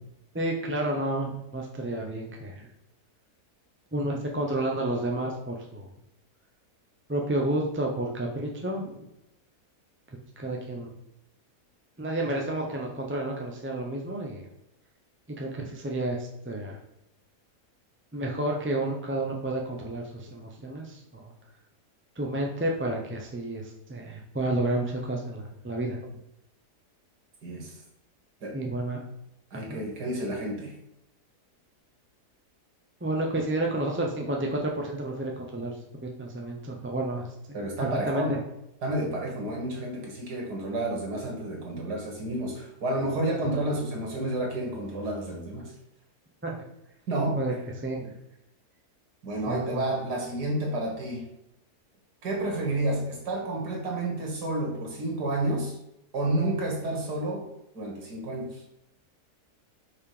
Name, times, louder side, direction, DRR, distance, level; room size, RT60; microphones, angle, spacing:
voice 1, 0.3-2.7 3.9-5.9 7.1-9.0 10.4-10.9 12.0-14.5 15.4-16.8 18.1-21.3 22.2-26.0 28.5-29.0 29.6-29.8 33.0-35.8 36.0-37.3 37.8-38.2 46.4-46.6 47.4-47.5 47.8-48.1 49.5-49.8, right 1 dB, 10° right, 0 dB, 0.5 m, -30 dB
voice 2, 27.4-27.8 28.4-28.6 29.5-30.7 37.5-38.4 38.8-45.7 47.1-47.4 49.2-51.3 52.2-55.8 56.1-57.5 57.7-58.6, right 1 dB, 85° right, -1 dB, 2.2 m, -30 dB
5.4 x 4.9 x 4.9 m, 0.84 s
omnidirectional pair, 1.7 m